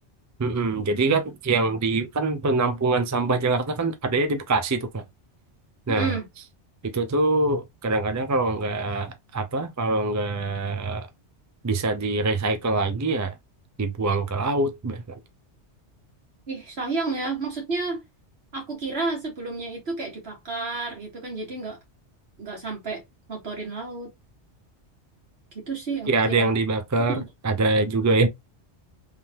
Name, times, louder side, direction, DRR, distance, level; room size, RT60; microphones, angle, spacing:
voice 1, 0.4-5.0 5.9-6.1 6.9-11.1 11.6-13.3 13.8-15.0 26.1-28.3, right 3 dB, 25° right, 0.4 m, -24 dB
voice 2, 5.9-6.3 16.5-18.0 18.5-21.8 22.4-23.0 23.3-24.1 25.5-26.5 27.1-27.3, right 3 dB, 60° right, 1.9 m, -31 dB
3.7 x 3.3 x 2.8 m
omnidirectional pair, 1.2 m